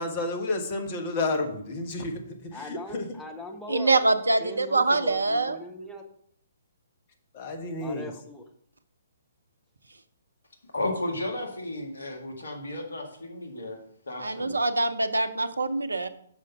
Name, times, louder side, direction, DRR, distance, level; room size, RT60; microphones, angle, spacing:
voice 1, 0.0-3.1 7.3-8.1, left 2 dB, 35° left, 4 dB, 1.2 m, -31 dB
voice 2, 2.5-4.0 4.4-6.0 7.8-8.4, left 2 dB, 5° left, 2 dB, 0.9 m, -40 dB
voice 3, 3.7-5.6 14.2-16.1, right 3 dB, 75° right, 11 dB, 0.6 m, -24 dB
voice 4, 10.7-13.8 14.1-14.6, left 2 dB, 65° left, 2 dB, 1.7 m, -33 dB
6.4 x 5.2 x 5.7 m, 0.66 s
figure-of-eight pair, 125°, 0 cm